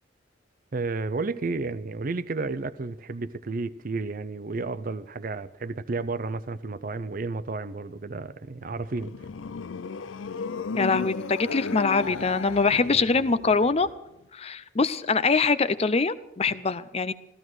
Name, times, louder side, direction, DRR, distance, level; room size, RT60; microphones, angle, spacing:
voice 1, 0.7-9.1, right 3 dB, 45° right, 0.5 m, -32 dB
sound 1, 8.6-14.0, left 5 dB, 85° left, 0.5 m, -35 dB
voice 2, 10.8-13.9 14.3-17.1, left 4 dB, 30° left, 0.5 m, -23 dB
14.5 x 14.0 x 6.3 m
head